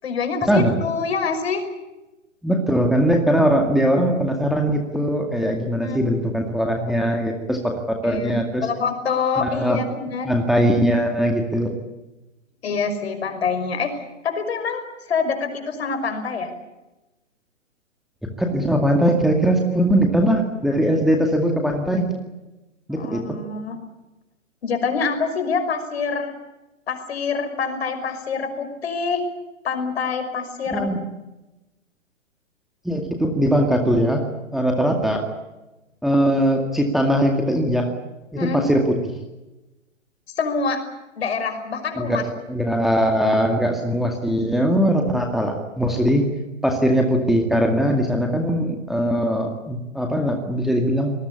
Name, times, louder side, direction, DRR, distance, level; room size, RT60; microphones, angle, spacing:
voice 1, 0.0-1.6 5.8-6.0 8.0-10.3 12.6-13.9 14.2-14.8 15.1-16.5 22.9-23.8 24.6-26.3 26.9-29.2 29.6-30.9 38.4-38.6 40.4-40.8 41.2-42.2, left 5 dB, 55° left, 8 dB, 5.6 m, -25 dB
voice 2, 2.4-8.7 9.4-9.8 10.2-11.7 18.4-22.2 22.9-23.4 30.7-31.0 32.8-34.2 34.5-35.2 36.0-37.9 38.3-38.9 42.0-46.3 46.6-51.1, equal, ahead, 2 dB, 2.1 m, -20 dB
26.0 x 20.5 x 8.5 m, 1.0 s
figure-of-eight pair, 125°, 38 cm